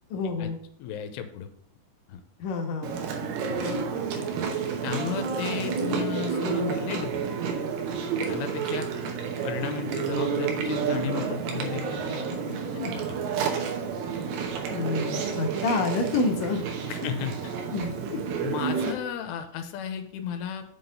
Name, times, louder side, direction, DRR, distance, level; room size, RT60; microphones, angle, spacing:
voice 1, 0.1-0.6 2.4-3.0 14.7-16.7 17.0-17.1 17.7-18.2, left 3 dB, 65° left, 2 dB, 2.5 m, -28 dB
voice 2, 0.8-1.5 2.1-2.2 3.6-3.8 4.2-4.3 4.8-7.2 8.3-8.9 9.4-13.2 16.9-17.5 18.4-20.6, left 8 dB, 90° left, 7 dB, 2.8 m, -34 dB
Chewing mastication, 2.8-18.9, right 6 dB, 75° right, 2.8 m, -30 dB
7.2 x 4.0 x 6.6 m, 0.66 s
omnidirectional pair, 4.8 m